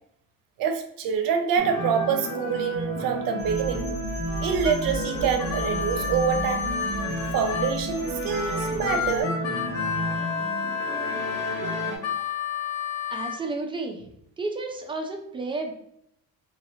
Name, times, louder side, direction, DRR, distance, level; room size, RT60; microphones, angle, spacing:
voice 1, 0.6-3.9 4.4-6.7 7.3-9.4 12.1-12.2, right 7 dB, 70° right, 6 dB, 0.6 m, -26 dB
sound 1, 1.6-12.0, equal, 10° left, 1.1 m, -31 dB
sound 2, 3.4-9.2, right 2 dB, 70° left, 1.3 m, -37 dB
Harmonica, 4.3-7.8 8.3-13.4, left 7 dB, 55° left, 0.5 m, -31 dB
voice 2, 13.1-14.0 14.4-15.7, right 3 dB, 15° right, 3 dB, 0.3 m, -31 dB
3.1 x 2.7 x 2.7 m, 0.75 s
cardioid pair, 145°, 36 cm